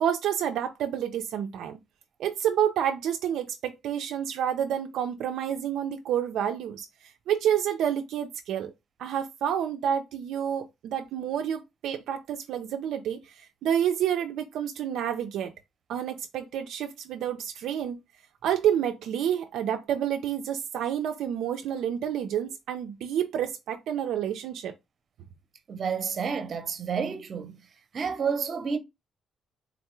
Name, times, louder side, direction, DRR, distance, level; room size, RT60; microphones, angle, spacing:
voice 1, 0.0-1.8 2.2-8.7 9.0-15.5 15.9-18.0 18.4-24.7, right 9 dB, 80° right, 0.3 m, -29 dB
voice 2, 25.7-27.6 27.9-28.8, right 6 dB, 50° right, 0.7 m, -30 dB
3.9 x 2.2 x 2.9 m
cardioid pair, 90°, 0 cm